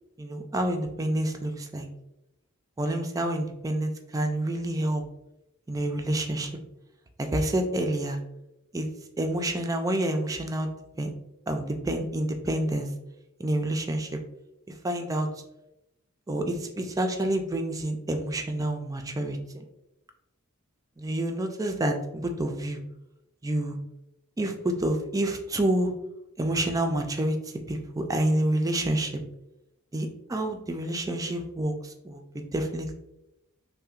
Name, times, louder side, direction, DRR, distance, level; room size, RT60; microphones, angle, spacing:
voice 1, 0.2-1.9 2.8-5.0 5.7-6.5 7.2-8.2 8.7-8.9 9.2-10.7 11.0-11.1 11.5-12.9 13.4-14.2 14.8-15.3 16.3-19.6 21.0-22.8 23.4-23.8 24.4-25.9 26.4-27.4 27.7-29.2 29.9-32.2 32.5-32.9, right 1 dB, 15° right, 5 dB, 0.3 m, -28 dB
5.4 x 2.1 x 2.4 m, 0.90 s
head